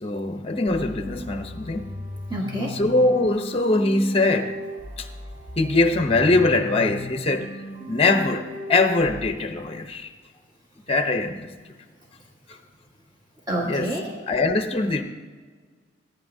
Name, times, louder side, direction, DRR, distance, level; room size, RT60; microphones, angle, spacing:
voice 1, 0.0-1.9 2.7-4.6 5.0-5.1 5.6-7.5 7.9-10.1 10.9-11.5 13.6-13.9 14.3-15.0, left 2 dB, 30° left, 7 dB, 0.7 m, -22 dB
sound 1, 0.7-9.3, left 1 dB, 50° right, 3.5 m, -37 dB
voice 2, 2.3-2.7 13.5-14.1, right 1 dB, 20° right, -3 dB, 1.5 m, -27 dB
18.0 x 9.7 x 2.7 m, 1.5 s
head